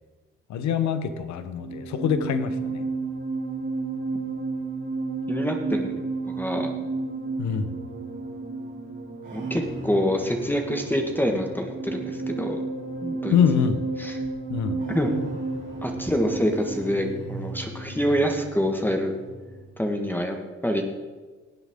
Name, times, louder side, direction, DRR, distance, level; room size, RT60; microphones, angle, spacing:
voice 1, 0.5-2.8 7.4-7.8 13.3-13.9 14.5-14.8, left 8 dB, 70° left, 11 dB, 1.0 m, -24 dB
sound 1, 1.4-19.8, right 3 dB, 40° right, 3.0 m, -32 dB
voice 2, 5.3-6.7 9.3-12.6 13.0-13.4 14.0-14.2 14.9-15.1 15.8-19.1 19.8-20.4 20.6-20.8, equal, 5° left, 3 dB, 1.6 m, -26 dB
18.5 x 8.1 x 3.7 m, 1.4 s
supercardioid pair, 60°, 29 cm